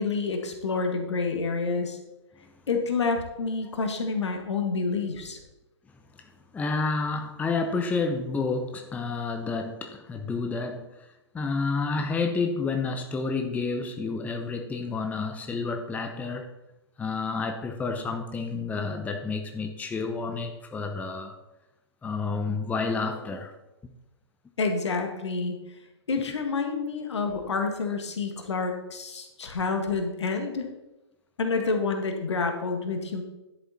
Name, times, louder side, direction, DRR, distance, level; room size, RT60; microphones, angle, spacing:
voice 1, 0.0-2.0 2.7-5.4 24.6-25.6 26.1-30.7 31.4-33.2, left 4 dB, 70° left, 4 dB, 1.8 m, -28 dB
voice 2, 6.5-10.9 11.3-16.5 17.0-21.3 22.0-23.5, left 4 dB, 10° left, 5 dB, 0.7 m, -30 dB
11.0 x 7.0 x 4.2 m, 0.98 s
figure-of-eight pair, 120°, 15 cm